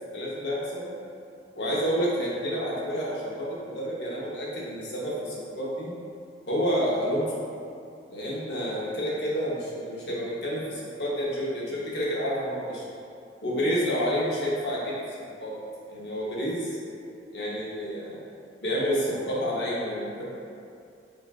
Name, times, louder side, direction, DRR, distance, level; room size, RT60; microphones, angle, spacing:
voice 1, 0.1-0.9 1.5-5.9 6.5-7.3 8.1-12.8 13.4-15.5 15.9-16.8 17.3-18.2 18.6-20.3, equal, 70° left, -6 dB, 0.9 m, -29 dB
4.8 x 2.4 x 2.3 m, 2.5 s
head